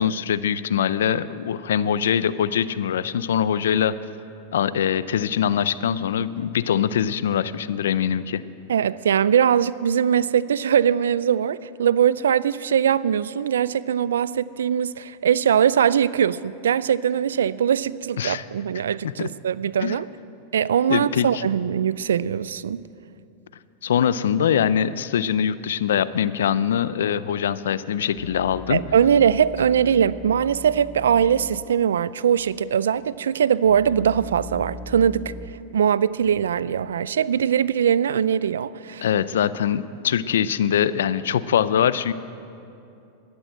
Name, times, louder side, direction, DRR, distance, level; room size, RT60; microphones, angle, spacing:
voice 1, 0.0-3.9 4.5-8.4 18.2-18.4 19.2-19.3 19.8-20.0 20.9-21.4 23.8-28.8 39.0-42.1, left 9 dB, 85° left, 16 dB, 0.5 m, -23 dB
voice 2, 8.7-20.1 20.5-22.8 28.7-35.3 35.7-39.1, right 8 dB, 90° right, 19 dB, 0.3 m, -21 dB
sound 1, 28.1-31.7 32.0-32.1 32.7-35.5, left 2 dB, 55° left, 2.0 m, -40 dB
13.0 x 11.0 x 7.7 m, 2.7 s
hypercardioid pair, 115°, 0 cm